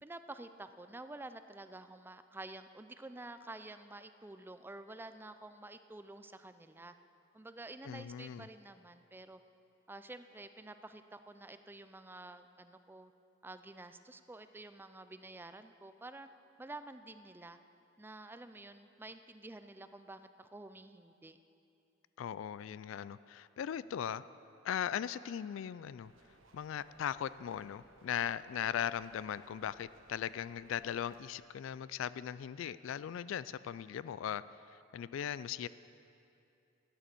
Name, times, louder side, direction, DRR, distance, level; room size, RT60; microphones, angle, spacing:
voice 1, 0.0-6.9 7.3-9.4 9.9-13.1 13.4-16.3 16.6-17.6 18.0-21.4, right 2 dB, 10° right, 10 dB, 0.4 m, -50 dB
voice 2, 7.8-8.5 22.2-24.2 24.6-26.1 26.5-34.4 34.9-35.7, left 9 dB, 70° left, 16 dB, 0.3 m, -38 dB
sound 1, 26.0-31.2, right 2 dB, 75° right, 1.3 m, -64 dB
13.0 x 9.0 x 6.9 m, 2.7 s
head